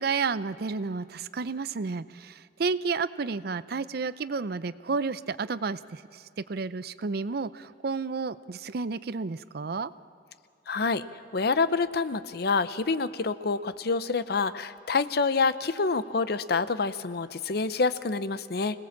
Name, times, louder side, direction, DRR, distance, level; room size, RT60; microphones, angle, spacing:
voice 1, 0.0-6.2 6.5-9.9, right 4 dB, 55° right, 15 dB, 0.5 m, -31 dB
voice 2, 10.7-11.1 11.3-18.8, left 4 dB, 60° left, 13 dB, 0.7 m, -27 dB
25.5 x 18.5 x 7.3 m, 2.5 s
head